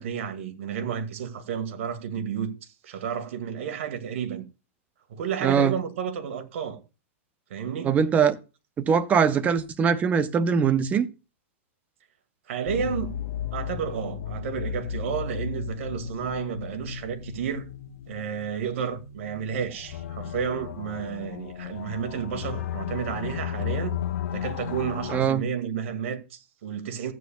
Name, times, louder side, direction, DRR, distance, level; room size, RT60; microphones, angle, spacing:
voice 1, 0.0-4.4 5.1-6.8 7.5-7.9 12.5-13.1 13.5-17.7 18.1-24.0 24.3-27.1, right 7 dB, 65° right, 1.9 m, -31 dB
voice 2, 5.4-5.8 7.8-8.4 8.8-11.1 25.1-25.5, right 7 dB, 20° right, 0.7 m, -22 dB
sound 1, 12.7-25.2, left 9 dB, 75° left, 1.2 m, -34 dB
14.5 x 8.8 x 2.3 m
hypercardioid pair, 145°, 8 cm